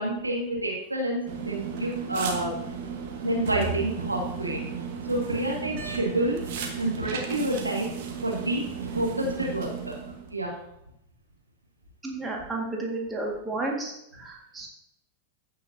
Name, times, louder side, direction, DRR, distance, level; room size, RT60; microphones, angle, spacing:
voice 1, 0.0-2.5 3.2-4.6 5.1-6.4 6.8-7.9 8.2-10.0 10.3-10.5, right 1 dB, 85° right, -2 dB, 2.1 m, -28 dB
sound 1, 1.3-10.3, right 6 dB, 50° right, 1.4 m, -35 dB
voice 2, 12.0-13.9 14.2-14.7, right 2 dB, 15° right, -1 dB, 1.9 m, -32 dB
15.0 x 5.5 x 2.8 m, 0.81 s
figure-of-eight pair, 90°, 0 cm